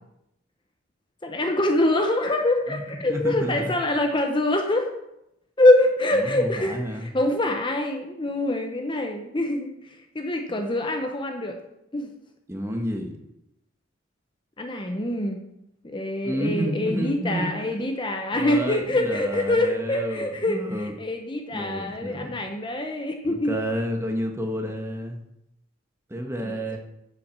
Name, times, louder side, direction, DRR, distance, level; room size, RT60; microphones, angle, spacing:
voice 1, 1.2-4.9 5.6-11.6 11.9-12.1 14.6-15.4 15.8-23.5 26.4-26.8, left 1 dB, 25° left, 4 dB, 0.8 m, -24 dB
voice 2, 3.1-3.5 6.1-7.1 12.5-13.1 16.2-17.5 18.3-20.9 21.5-22.4 23.2-25.2 26.1-26.8, equal, 15° right, 3 dB, 1.2 m, -30 dB
9.7 x 5.9 x 6.8 m, 0.84 s
head